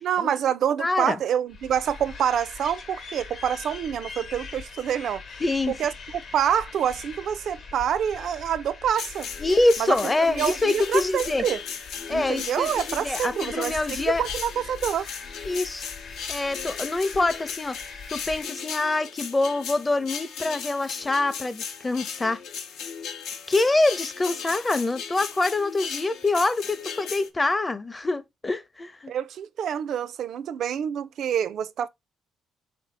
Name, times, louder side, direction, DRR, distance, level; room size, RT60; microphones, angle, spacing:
voice 1, 0.0-5.2 5.8-9.3 9.8-10.0 10.4-11.6 12.1-15.1 29.1-31.9, right 9 dB, 70° right, 0.3 m, -27 dB
voice 2, 0.8-1.2 5.4-5.7 9.4-11.4 12.1-14.2 15.4-15.9 16.3-17.8 18.1-22.4 23.5-29.1, left 2 dB, 20° left, 0.5 m, -25 dB
sound 1, 1.5-18.5, left 4 dB, 55° left, 0.9 m, -42 dB
sound 2, 8.9-27.3, left 7 dB, 85° left, 0.6 m, -37 dB
3.9 x 2.7 x 3.9 m
cardioid pair, 90°, 0 cm